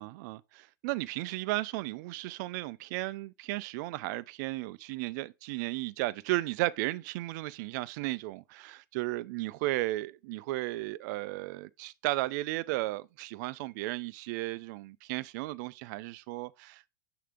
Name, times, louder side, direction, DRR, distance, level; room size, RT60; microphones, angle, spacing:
voice 1, 0.0-16.9, right 19 dB, 55° right, 0.5 m, -34 dB
6.6 x 2.9 x 5.1 m
hypercardioid pair, 105°, 11 cm